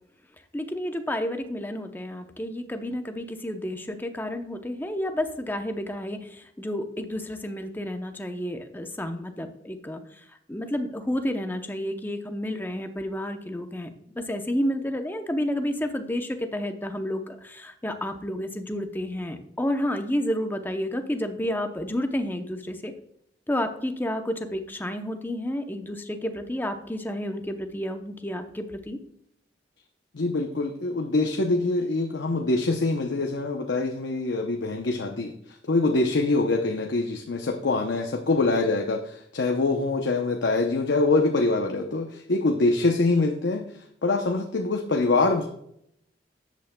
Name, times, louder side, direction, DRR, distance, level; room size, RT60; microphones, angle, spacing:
voice 1, 0.5-10.0 10.5-22.9 23.5-29.0, left 1 dB, 10° left, 6 dB, 0.7 m, -30 dB
voice 2, 30.1-35.3 35.7-43.7 44.0-45.5, left 3 dB, 80° left, 4 dB, 0.7 m, -24 dB
13.0 x 8.2 x 2.2 m, 0.73 s
head